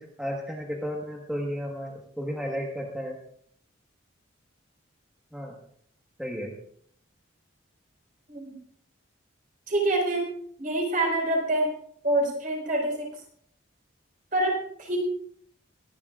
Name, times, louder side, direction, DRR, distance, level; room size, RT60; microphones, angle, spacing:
voice 1, 0.0-3.2 5.3-5.6 6.2-6.5, equal, 5° right, -2 dB, 1.4 m, -33 dB
voice 2, 9.7-10.3 10.6-11.7 12.0-13.1 14.3-15.0, right 1 dB, 40° right, -1 dB, 5.0 m, -26 dB
24.0 x 11.5 x 2.5 m, 0.63 s
head